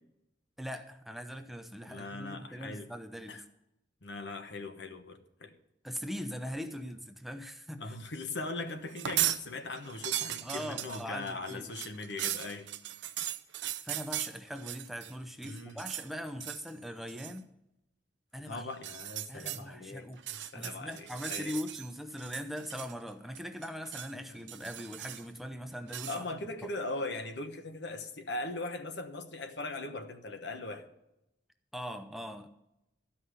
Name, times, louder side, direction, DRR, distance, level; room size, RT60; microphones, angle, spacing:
voice 1, 0.6-3.4 5.8-8.0 10.4-11.7 13.8-17.5 18.3-18.7 19.3-26.7 31.7-32.5, equal, ahead, 7 dB, 0.6 m, -41 dB
voice 2, 1.9-2.9 3.3-3.4 4.0-5.5 7.8-12.7 15.4-15.8 18.4-21.5 26.1-30.9, left 2 dB, 70° left, 7 dB, 1.1 m, -40 dB
sound 1, 8.9-9.4 9.8-15.1 15.4-16.1 16.4-16.7 17.1-17.4 18.7-19.6 20.1-21.9 22.2-23.1 23.3-24.1 24.5-25.4 25.9-26.2, right 13 dB, 75° right, 0.6 m, -37 dB
13.0 x 5.6 x 8.0 m, 0.87 s
head